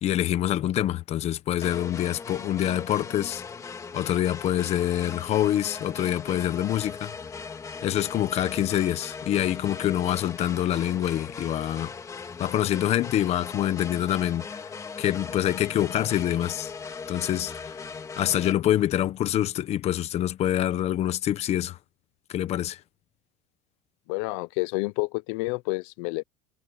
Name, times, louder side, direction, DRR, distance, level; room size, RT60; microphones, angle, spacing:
voice 1, 0.0-3.4 3.9-7.1 7.8-11.9 12.2-14.7 15.0-16.7 17.1-17.8 18.2-21.8 22.3-22.8, left 12 dB, 35° left, 1.0 m, -26 dB
sound 1, 1.6-18.5, left 5 dB, 20° left, 2.1 m, -39 dB
voice 2, 24.1-26.2, left 25 dB, 70° left, 0.7 m, -29 dB
cardioid pair, 155°, 18 cm